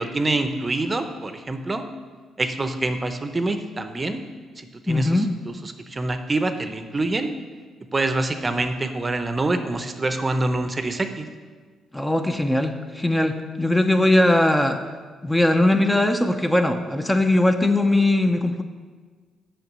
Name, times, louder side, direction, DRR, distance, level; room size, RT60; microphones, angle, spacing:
voice 1, 0.0-1.8 2.4-4.3 4.6-7.3 7.9-11.3, right 2 dB, 25° right, 8 dB, 0.7 m, -26 dB
voice 2, 4.9-5.3 11.9-14.8 15.2-18.6, left 1 dB, 10° left, 6 dB, 0.6 m, -20 dB
6.8 x 5.7 x 7.4 m, 1.5 s
cardioid pair, 90°, 0 cm